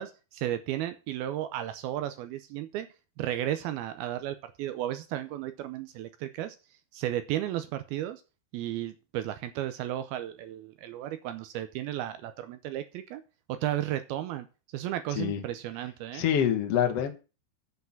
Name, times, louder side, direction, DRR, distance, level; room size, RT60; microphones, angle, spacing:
voice 1, 0.0-2.9 3.2-6.6 6.9-8.2 8.5-13.2 13.5-14.5 14.7-16.2, right 12 dB, 80° right, 10 dB, 2.5 m, -34 dB
voice 2, 16.1-17.1, left 9 dB, 65° left, 5 dB, 1.6 m, -26 dB
8.0 x 5.9 x 7.2 m, 0.32 s
omnidirectional pair, 4.6 m